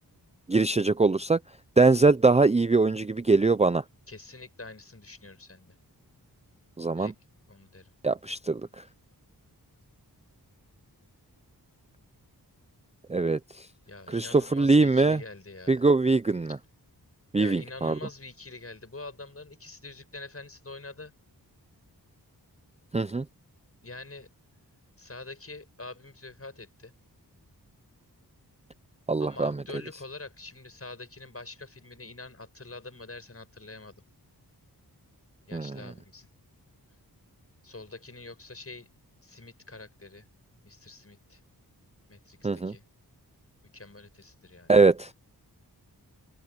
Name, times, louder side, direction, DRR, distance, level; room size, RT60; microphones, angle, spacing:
voice 1, 0.5-1.4 1.8-3.8 6.8-7.1 8.0-8.8 13.1-13.4 14.1-15.2 15.7-16.6 17.3-18.0 22.9-23.2 29.1-29.5 35.5-35.8 42.4-42.7 44.7-45.1, right 3 dB, 15° right, 0.5 m, -22 dB
voice 2, 4.1-5.8 7.0-7.1 7.5-7.9 13.9-15.8 16.5-16.6 17.4-21.1 23.8-24.3 25.0-26.9 29.2-34.0 35.5-36.3 37.6-38.9 39.2-40.3 40.6-41.4 42.1-42.8 43.7-44.8, left 3 dB, 35° left, 6.4 m, -45 dB
wide cardioid pair, 75°, 39 cm